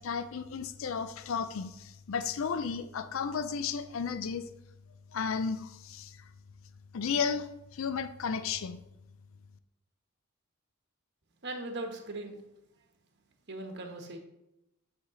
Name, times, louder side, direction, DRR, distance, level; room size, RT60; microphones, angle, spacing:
voice 1, 0.0-4.4 5.1-6.1 6.9-8.8, left 6 dB, 65° left, 11 dB, 0.4 m, -33 dB
voice 2, 11.4-12.4 13.5-14.2, right 2 dB, 55° right, 4 dB, 1.1 m, -39 dB
8.0 x 3.4 x 6.2 m, 0.89 s
head